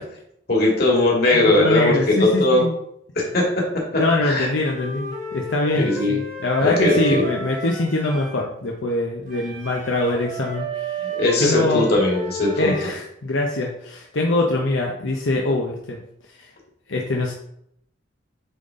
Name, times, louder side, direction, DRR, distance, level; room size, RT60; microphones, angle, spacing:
voice 1, 0.5-2.6 3.2-3.6 3.9-4.5 5.7-6.2 6.6-7.2 11.2-12.7, left 2 dB, 50° left, -3 dB, 2.4 m, -19 dB
voice 2, 1.3-2.8 4.0-11.1 11.4-12.0 12.6-16.0 16.4-16.5 16.9-17.3, left 2 dB, 80° left, 0 dB, 0.9 m, -23 dB
Wind instrument woodwind instrument, 4.6-8.4 9.3-12.9, right 3 dB, 45° right, 1.6 m, -32 dB
9.0 x 4.0 x 3.7 m, 0.73 s
head